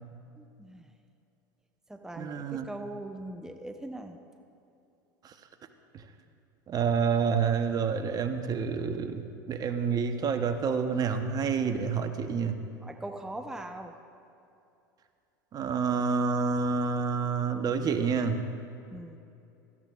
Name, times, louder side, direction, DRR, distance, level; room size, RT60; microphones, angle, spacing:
voice 1, 0.4-0.9 1.9-4.2 12.8-13.9 18.9-19.2, right 1 dB, 5° right, 5 dB, 0.7 m, -41 dB
voice 2, 2.2-2.7 5.2-5.3 6.7-12.6 15.5-18.4, right 5 dB, 35° right, 8 dB, 0.9 m, -28 dB
17.0 x 13.5 x 2.4 m, 2.7 s
hypercardioid pair, 80°, 11 cm